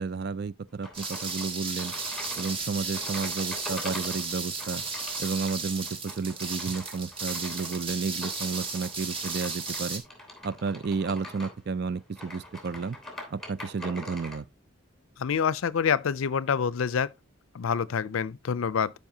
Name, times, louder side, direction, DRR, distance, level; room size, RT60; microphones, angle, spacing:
voice 1, 0.0-1.9 2.4-4.8 5.2-10.0 10.4-13.0 13.3-14.4, right 4 dB, 50° right, 0.4 m, -32 dB
sound 1, 0.8-14.4, left 1 dB, ahead, 2.8 m, -43 dB
sound 2, 0.9-10.0, right 4 dB, 25° right, 1.6 m, -34 dB
voice 2, 15.2-17.1 17.5-18.9, left 6 dB, 80° left, 0.5 m, -27 dB
12.0 x 5.5 x 2.8 m
head